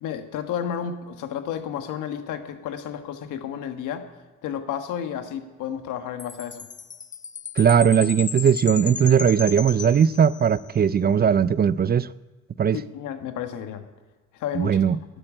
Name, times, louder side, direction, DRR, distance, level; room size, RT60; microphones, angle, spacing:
voice 1, 0.0-4.1 4.4-6.6 12.9-13.8 14.3-15.0, left 9 dB, 90° left, 1.4 m, -32 dB
Chime, 6.2-10.7, left 6 dB, 25° left, 0.5 m, -35 dB
voice 2, 7.6-12.1 12.6-12.8 14.5-15.0, right 7 dB, 35° right, 0.4 m, -19 dB
12.5 x 8.8 x 8.7 m
cardioid pair, 90°, 30 cm